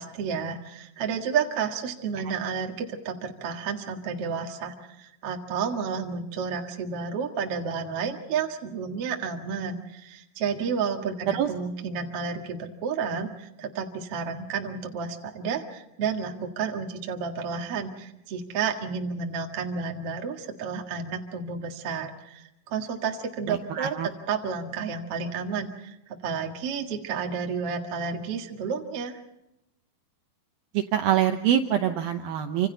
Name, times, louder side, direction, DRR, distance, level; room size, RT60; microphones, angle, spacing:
voice 1, 0.0-25.9 26.2-29.2, right 6 dB, 55° right, 2 dB, 1.7 m, -31 dB
voice 2, 23.5-24.1 30.7-32.7, right 10 dB, 80° right, 5 dB, 2.1 m, -25 dB
28.5 x 26.5 x 4.0 m, 0.84 s
omnidirectional pair, 5.5 m